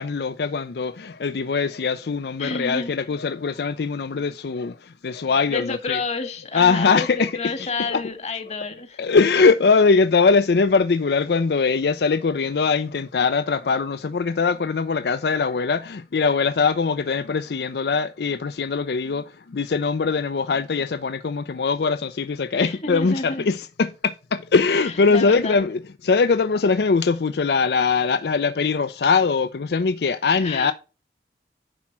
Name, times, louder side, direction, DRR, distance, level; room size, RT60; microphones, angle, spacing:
voice 1, 0.0-6.0 6.5-7.3 7.6-8.0 9.0-30.7, left 4 dB, 65° left, 0.4 m, -21 dB
voice 2, 2.4-2.9 5.5-9.0 22.6-23.5 24.8-25.6 30.4-30.7, left 3 dB, 40° left, 1.6 m, -30 dB
10.5 x 4.3 x 5.9 m
head